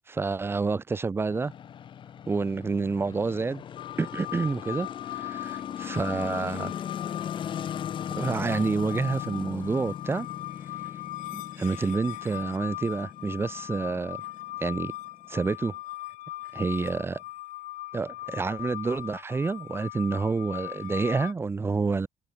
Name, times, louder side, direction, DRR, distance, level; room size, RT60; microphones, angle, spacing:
voice 1, 0.1-1.5 2.3-3.6 4.0-6.7 8.1-10.3 11.3-14.2 14.6-14.9 15.3-15.7 16.5-17.2 17.9-22.1, right 4 dB, 20° right, 1.2 m, -28 dB
sound 1, 1.3-15.5, left 9 dB, 40° left, 1.0 m, -39 dB
sound 2, 3.8-21.3, left 17 dB, 80° left, 1.0 m, -39 dB
cardioid pair, 160°, 13 cm